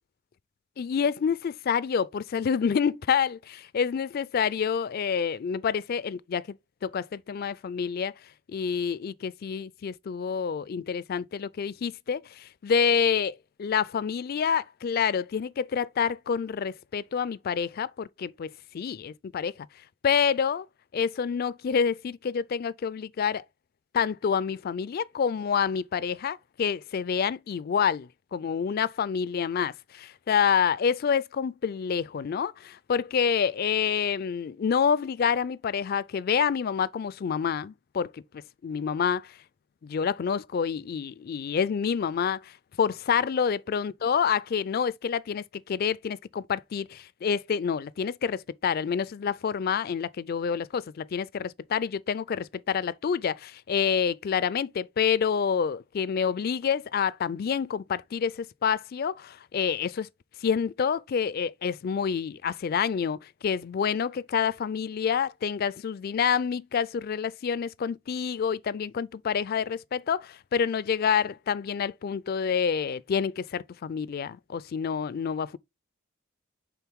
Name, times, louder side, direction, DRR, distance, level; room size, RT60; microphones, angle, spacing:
voice 1, 0.8-6.6 6.8-8.1 8.5-19.7 20.0-20.7 20.9-23.4 23.9-38.2 38.6-39.4 39.8-60.1 60.4-75.6, left 7 dB, 45° left, 0.3 m, -28 dB
9.0 x 3.7 x 3.5 m
head